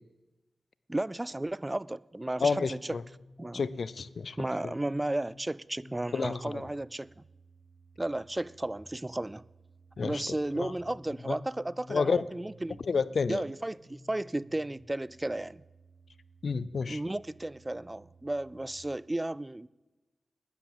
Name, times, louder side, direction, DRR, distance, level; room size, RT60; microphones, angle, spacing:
voice 1, 0.9-2.8 3.4-3.6 4.4-7.1 8.0-9.4 10.0-12.8 13.3-15.6 16.9-19.7, right 1 dB, 20° right, 0.3 m, -34 dB
voice 2, 2.4-3.0 3.5-4.4 4.6-4.7 6.1-6.6 10.0-10.7 11.3-11.4 11.9-12.3 12.9-13.4 16.4-17.0, left 5 dB, 70° left, 0.5 m, -30 dB
sound 1, 2.8-18.8, equal, 20° left, 5.0 m, -56 dB
11.5 x 10.0 x 7.4 m
cardioid pair, 45°, 0 cm